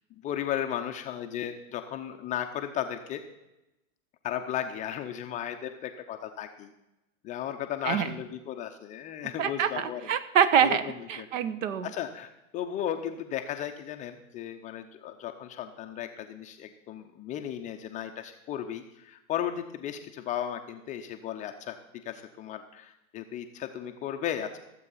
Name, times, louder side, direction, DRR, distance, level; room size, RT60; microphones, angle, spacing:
voice 1, 0.2-3.2 4.2-6.7 7.2-10.1 10.6-11.3 11.8-21.8 22.1-24.6, left 10 dB, 20° left, 5 dB, 0.5 m, -35 dB
voice 2, 9.4-10.8 11.1-11.9, right 8 dB, 60° right, 14 dB, 1.1 m, -25 dB
15.0 x 7.7 x 5.6 m, 0.95 s
hypercardioid pair, 125°, 43 cm